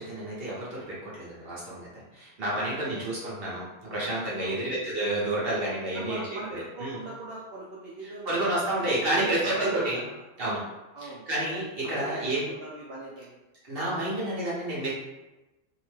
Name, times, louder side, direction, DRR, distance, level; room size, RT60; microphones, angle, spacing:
voice 1, 0.0-7.0 8.0-10.0 10.4-10.7 11.0-12.4 13.6-14.9, right 1 dB, 50° right, -7 dB, 0.8 m, -30 dB
voice 2, 5.9-8.4 8.7-10.0 10.9-11.3 11.9-13.4, right 2 dB, 85° right, -4 dB, 0.5 m, -39 dB
2.8 x 2.1 x 3.1 m, 1.1 s
omnidirectional pair, 1.6 m